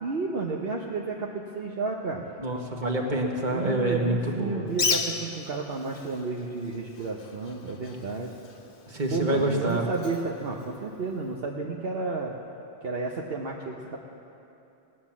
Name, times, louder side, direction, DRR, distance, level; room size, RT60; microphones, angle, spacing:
voice 1, 0.0-2.3 3.5-8.3 9.1-12.3 12.8-14.0, right 4 dB, 65° right, -1 dB, 1.2 m, -32 dB
voice 2, 2.4-4.7 8.9-9.8, right 1 dB, 45° right, 1 dB, 1.8 m, -27 dB
Bird, 4.7-11.3, left 4 dB, 55° left, 1.0 m, -35 dB
18.5 x 10.0 x 7.3 m, 2.8 s
omnidirectional pair, 1.1 m